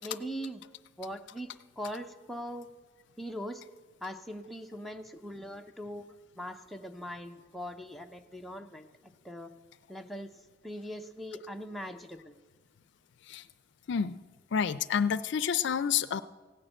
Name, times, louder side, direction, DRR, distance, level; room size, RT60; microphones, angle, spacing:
voice 1, 0.0-0.6 1.0-1.5 1.8-2.7 3.2-3.6 4.0-6.0 6.4-8.9 9.2-9.5 9.9-10.3 10.6-12.4, equal, ahead, 3 dB, 0.6 m, -40 dB
voice 2, 13.9-14.2 14.5-16.2, left 7 dB, 65° left, 14 dB, 0.4 m, -29 dB
16.0 x 6.7 x 8.9 m, 1.3 s
head